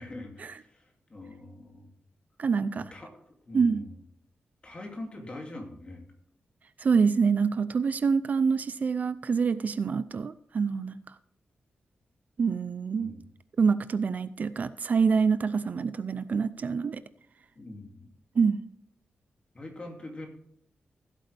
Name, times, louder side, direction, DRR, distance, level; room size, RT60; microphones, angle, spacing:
voice 1, 0.0-1.9 2.8-3.9 4.6-6.0 13.0-13.2 17.6-18.1 19.5-20.3, left 2 dB, 30° left, 2 dB, 2.5 m, -43 dB
voice 2, 2.4-2.9 3.5-3.8 6.8-11.0 12.4-13.1 13.6-17.0 18.4-18.6, right 5 dB, 45° right, 14 dB, 0.5 m, -26 dB
15.5 x 8.3 x 3.4 m, 0.70 s
wide cardioid pair, 165°, 4 cm